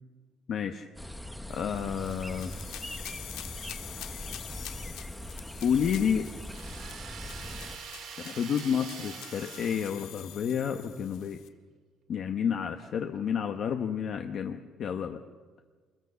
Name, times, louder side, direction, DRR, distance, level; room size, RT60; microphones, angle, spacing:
voice 1, 0.5-0.9 1.5-2.5 5.6-6.3 8.2-11.4 12.1-15.2, left 7 dB, 40° left, 5 dB, 1.0 m, -30 dB
sound 1, 1.0-7.8, left 1 dB, ahead, 0.9 m, -41 dB
sound 2, 1.5-11.5, left 12 dB, 80° left, 1.6 m, -46 dB
sound 3, 6.5-10.6, right 8 dB, 50° right, 2.2 m, -45 dB
28.0 x 22.0 x 6.9 m, 1.5 s
cardioid pair, 180°, 0 cm